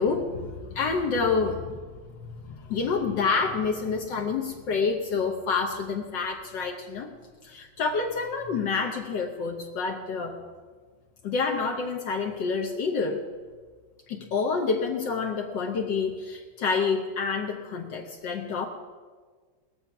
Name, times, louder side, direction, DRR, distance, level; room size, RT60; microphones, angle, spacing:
voice 1, 0.0-1.8 2.4-7.1 7.4-10.4 11.2-13.2 14.1-18.7, left 5 dB, 65° left, 2 dB, 1.6 m, -28 dB
20.0 x 7.1 x 5.8 m, 1.5 s
omnidirectional pair, 2.2 m